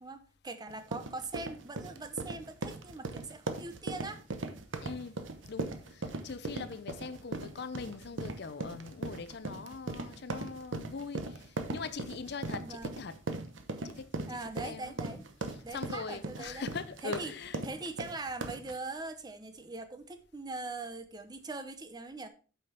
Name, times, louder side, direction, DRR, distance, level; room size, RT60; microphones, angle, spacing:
voice 1, 0.0-4.2 12.6-13.0 14.3-15.2 15.6-16.7 17.0-17.3 17.6-22.3, right 3 dB, 20° right, 0.7 m, -41 dB
sound 1, 0.7-18.8, right 2 dB, 80° right, 0.9 m, -39 dB
voice 2, 4.8-13.2 13.8-15.3 15.5-17.6, left 5 dB, 60° left, 0.6 m, -42 dB
8.3 x 5.7 x 4.3 m
head